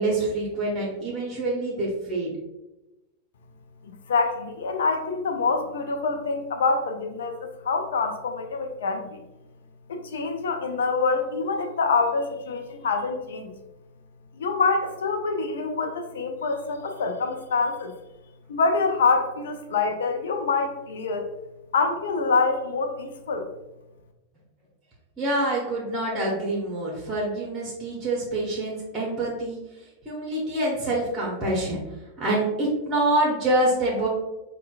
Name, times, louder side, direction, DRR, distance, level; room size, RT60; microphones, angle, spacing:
voice 1, 0.0-2.3 25.2-29.6 30.0-31.8 32.2-34.1, right 1 dB, 15° right, -3 dB, 0.9 m, -26 dB
voice 2, 3.8-9.2 9.9-13.5 14.4-17.9 18.5-21.3 21.7-23.5, left 4 dB, 60° left, 5 dB, 0.4 m, -26 dB
5.4 x 2.1 x 2.4 m, 1.0 s
figure-of-eight pair, 90°, 0 cm